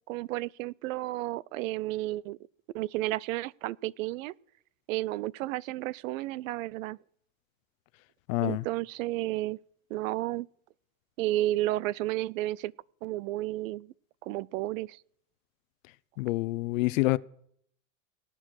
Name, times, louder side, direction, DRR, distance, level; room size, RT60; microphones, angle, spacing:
voice 1, 0.1-2.4 2.7-4.3 4.9-7.0 8.4-9.6 9.9-10.5 11.2-12.7 13.0-13.9 14.2-15.0, right 16 dB, 85° right, 0.6 m, -32 dB
voice 2, 8.3-8.6 16.2-17.2, left 20 dB, 80° left, 0.7 m, -27 dB
18.5 x 10.0 x 6.4 m
supercardioid pair, 125°, 39 cm